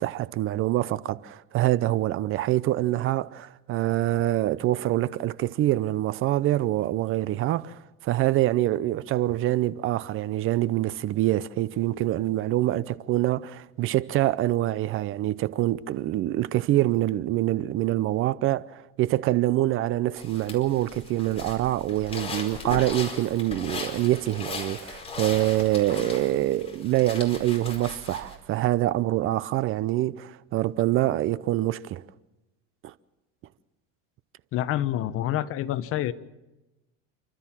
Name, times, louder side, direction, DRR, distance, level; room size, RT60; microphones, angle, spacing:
voice 1, 0.0-32.0 32.8-32.9, right 15 dB, 45° right, 0.7 m, -25 dB
sound 1, 20.2-28.4, left 3 dB, 20° left, 4.8 m, -38 dB
voice 2, 34.5-36.1, left 12 dB, 45° left, 1.0 m, -27 dB
29.5 x 13.0 x 7.4 m
supercardioid pair, 125°, 30 cm